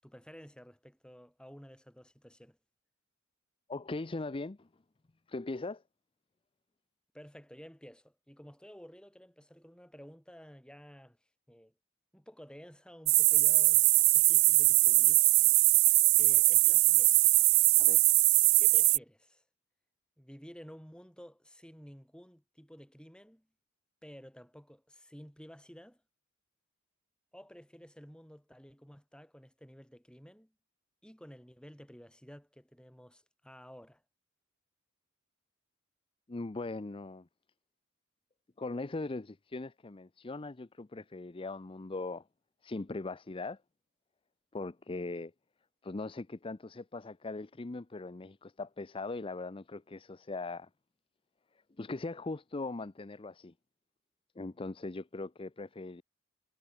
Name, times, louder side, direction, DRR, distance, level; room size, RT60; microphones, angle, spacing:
voice 1, 0.0-2.6 7.1-11.2 11.5-11.7 12.1-13.8 14.1-15.3 16.1-17.3 18.6-19.4 20.2-23.5 24.0-26.0 27.3-30.5 31.0-34.0, equal, 5° left, 6.9 m, -52 dB
voice 2, 3.7-4.7 5.3-5.8 17.8-18.0 36.3-37.3 38.6-42.2 42.6-43.6 44.5-45.3 45.8-50.7 51.8-53.5 54.4-56.0, left 3 dB, 25° left, 0.5 m, -40 dB
sound 1, 13.1-19.0, right 23 dB, 80° right, 0.4 m, -22 dB
head